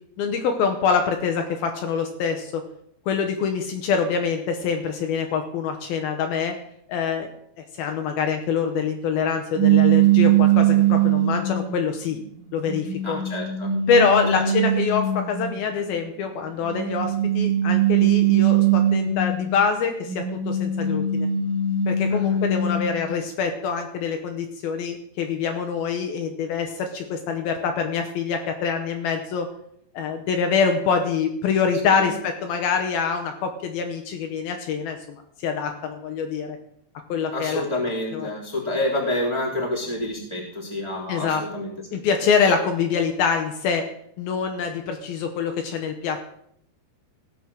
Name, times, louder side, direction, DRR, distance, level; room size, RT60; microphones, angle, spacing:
voice 1, 0.2-2.6 3.1-6.6 6.9-7.3 7.8-12.2 12.5-13.2 13.9-21.3 21.9-29.5 29.9-36.6 37.1-37.6 38.1-38.3 41.1-41.4 41.9-43.9 44.2-46.2, left 6 dB, 75° left, 5 dB, 2.7 m, -25 dB
sound 1, 9.6-11.8 12.4-15.5 16.6-19.6 20.1-23.0, right 8 dB, 60° right, 2.2 m, -21 dB
voice 2, 13.0-13.7 14.3-14.4 22.1-22.4 31.9-32.2 37.3-41.7, left 1 dB, 10° right, -4 dB, 2.3 m, -28 dB
16.5 x 7.1 x 6.1 m, 0.70 s
omnidirectional pair, 4.8 m